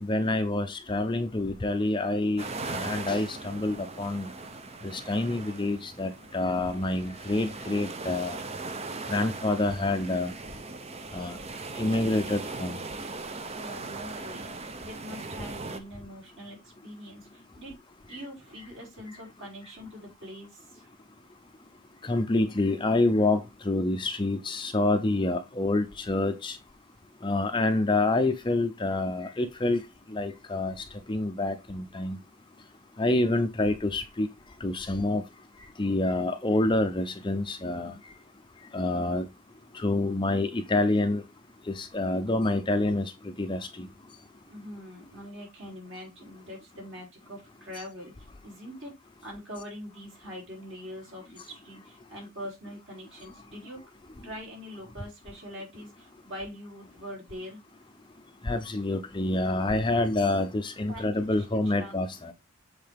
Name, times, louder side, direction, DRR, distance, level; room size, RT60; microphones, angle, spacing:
voice 1, 0.0-4.3 4.9-8.4 9.1-10.3 11.1-11.4 11.8-12.8 22.0-26.6 27.2-29.8 30.1-30.7 31.1-32.2 33.0-34.3 34.6-35.2 35.8-37.9 38.7-39.2 39.8-41.2 41.7-43.1 43.4-43.9 58.4-62.3, left 2 dB, 20° left, 0.6 m, -27 dB
sound 1, 2.4-15.8, right 3 dB, 30° right, 0.6 m, -39 dB
voice 2, 13.5-14.5 14.8-17.8 18.1-20.9 44.5-49.0 49.2-53.8 54.2-57.6 59.5-59.7 60.9-61.5 61.8-62.0, equal, 55° right, 4.2 m, -43 dB
7.7 x 4.0 x 3.4 m
head